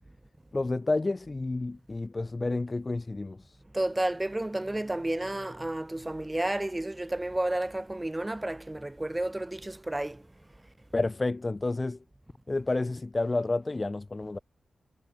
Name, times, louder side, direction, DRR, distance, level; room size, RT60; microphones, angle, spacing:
voice 1, 0.5-3.4 10.9-12.0 12.5-14.4, left 2 dB, 25° left, 1.1 m, -30 dB
voice 2, 3.7-10.2, right 1 dB, 15° right, 8.0 m, -31 dB
wide cardioid pair, 115°, 0 cm